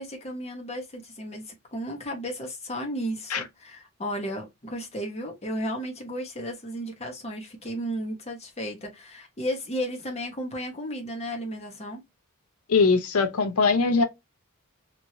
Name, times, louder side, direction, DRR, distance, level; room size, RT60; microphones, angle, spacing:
voice 1, 0.0-12.0, equal, 30° left, 1.0 m, -34 dB
voice 2, 12.7-14.0, left 4 dB, 75° left, 0.6 m, -21 dB
3.0 x 2.7 x 2.7 m
head